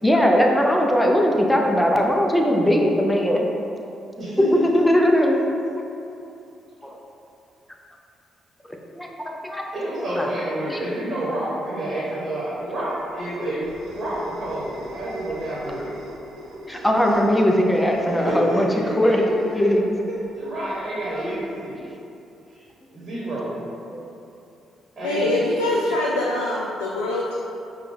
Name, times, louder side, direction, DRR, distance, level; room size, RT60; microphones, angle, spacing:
voice 1, 0.0-3.4 4.4-5.4 8.9-9.7 10.2-10.3 10.7-10.8 16.7-18.7 19.0-19.8 21.2-21.4 23.9-24.0, equal, 10° left, 0 dB, 0.6 m, -19 dB
voice 2, 9.7-16.0 18.0-19.2 19.6-19.7 20.1-21.8 22.5-23.6 25.0-25.4, right 1 dB, 35° right, -7 dB, 1.2 m, -29 dB
sound 1, 12.7-21.5, right 1 dB, 70° right, 0.6 m, -41 dB
voice 3, 25.0-27.4, left 2 dB, 85° left, -4 dB, 0.3 m, -23 dB
5.0 x 2.3 x 3.4 m, 2.7 s
hypercardioid pair, 45°, 0 cm